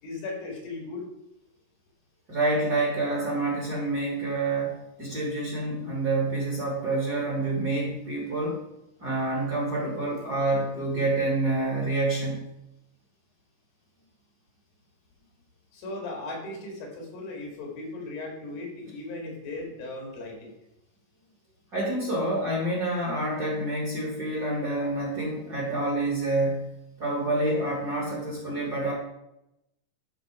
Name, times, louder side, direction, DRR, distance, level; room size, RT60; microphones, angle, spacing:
voice 1, 0.0-1.1 15.7-20.5, left 2 dB, 80° left, 1 dB, 3.8 m, -37 dB
voice 2, 2.3-8.6 9.0-12.4 21.7-26.7 27.0-28.9, right 2 dB, 35° right, -4 dB, 1.9 m, -27 dB
12.0 x 4.1 x 4.8 m, 0.88 s
omnidirectional pair, 4.1 m